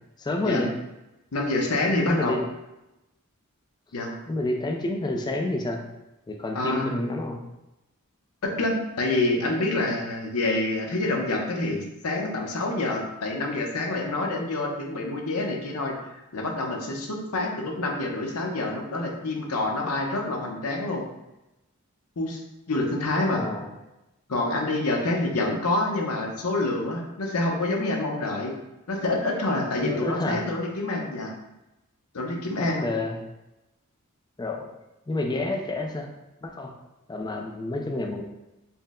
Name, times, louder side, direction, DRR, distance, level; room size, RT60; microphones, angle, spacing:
voice 1, 0.2-0.7 2.1-2.4 4.3-5.8 6.3-7.4 23.3-23.7 29.8-30.5 32.6-33.2 34.4-34.7 35.1-36.1 36.4-36.8 37.1-38.2, left 2 dB, 20° left, 2 dB, 0.4 m, -29 dB
voice 2, 1.3-2.4 3.9-4.2 6.5-6.9 8.4-15.9 16.3-21.0 22.2-22.4 22.7-23.4 24.3-28.5 28.9-31.3 32.1-32.9, left 2 dB, 85° left, 0 dB, 0.7 m, -27 dB
4.3 x 2.1 x 3.6 m, 0.96 s
head